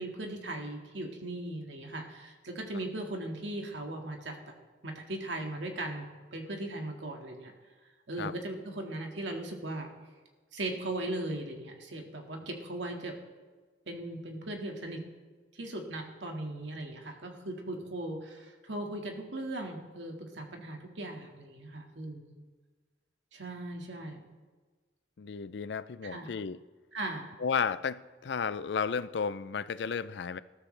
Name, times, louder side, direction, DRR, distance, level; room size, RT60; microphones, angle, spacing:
voice 1, 0.0-4.4 4.8-6.1 6.3-7.5 8.1-9.9 10.5-13.2 13.9-15.0 15.5-22.4 23.3-24.3 26.0-26.3 26.9-27.3, right 1 dB, 80° right, 2 dB, 2.0 m, -38 dB
voice 2, 25.2-26.6 27.4-30.4, left 6 dB, 70° left, 16 dB, 0.4 m, -33 dB
19.5 x 13.0 x 3.3 m, 1.4 s
head